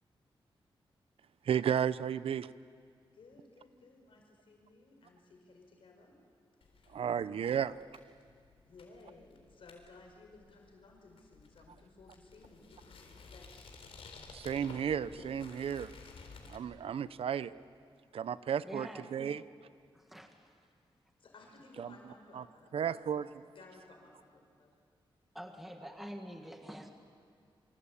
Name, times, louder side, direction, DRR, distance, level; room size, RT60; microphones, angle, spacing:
voice 1, 1.5-2.5 6.9-7.8 14.3-15.9 16.5-17.5 18.1-19.4 21.8-22.0 22.3-22.5 22.7-23.3, right 8 dB, 85° right, 15 dB, 0.7 m, -33 dB
voice 2, 3.1-6.1 6.8-7.5 8.6-13.7 18.8-18.9 21.2-22.8 23.1-24.7, left 3 dB, 70° left, 1 dB, 5.1 m, -58 dB
sound 1, 6.6-16.6, left 4 dB, 90° left, 4.0 m, -54 dB
voice 3, 18.6-19.4 19.9-20.5 25.3-26.9, equal, ahead, 4 dB, 1.8 m, -46 dB
26.5 x 25.5 x 8.5 m, 2.2 s
wide cardioid pair, 140°, 9 cm